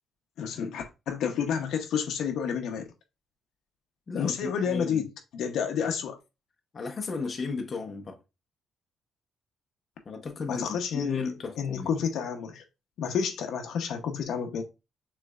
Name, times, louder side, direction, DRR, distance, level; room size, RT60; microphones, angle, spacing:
voice 1, 0.4-2.9 4.1-5.1 5.3-6.2 10.5-11.2 11.6-12.6 13.0-14.6, left 7 dB, 70° left, 0.8 m, -30 dB
voice 2, 4.1-5.1 6.7-8.2 10.0-11.9, left 4 dB, 30° left, 0.7 m, -35 dB
6.4 x 3.2 x 2.4 m
cardioid pair, 165°, 0 cm